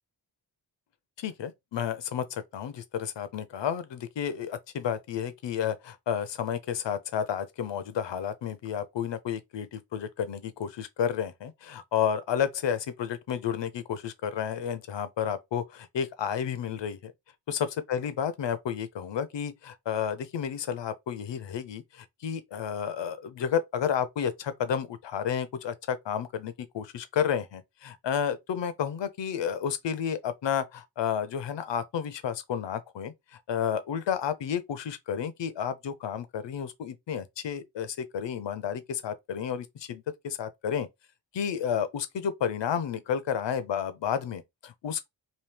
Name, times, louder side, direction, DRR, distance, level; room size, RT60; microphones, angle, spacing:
voice 1, 1.2-17.1 17.5-33.1 33.5-40.9 41.3-45.1, left 8 dB, 75° left, 0.6 m, -31 dB
3.0 x 2.7 x 3.3 m
wide cardioid pair, 175°, 44 cm